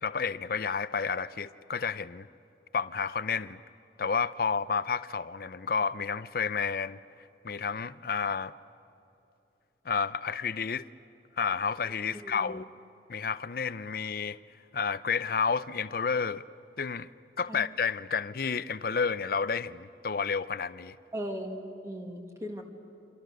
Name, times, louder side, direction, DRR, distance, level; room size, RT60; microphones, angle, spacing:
voice 1, 0.0-2.3 2.7-3.6 4.0-7.0 7.4-8.5 9.9-10.8 11.4-12.6 13.1-14.4 14.7-16.5 16.8-17.1 17.4-21.0, left 5 dB, 55° left, 0.5 m, -30 dB
voice 2, 12.1-12.5 17.5-17.6 21.1-22.6, equal, 15° right, 1.9 m, -38 dB
28.5 x 26.0 x 6.5 m
head